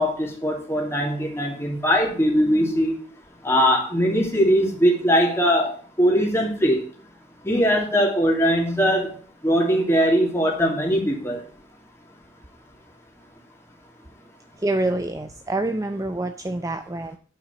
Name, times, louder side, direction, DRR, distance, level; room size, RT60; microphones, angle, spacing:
voice 1, 0.0-3.0 3.4-6.9 7.4-9.2 9.4-11.4, equal, 15° left, 3.0 m, -21 dB
voice 2, 14.6-17.2, right 2 dB, 20° right, 0.6 m, -26 dB
8.3 x 6.1 x 8.2 m
head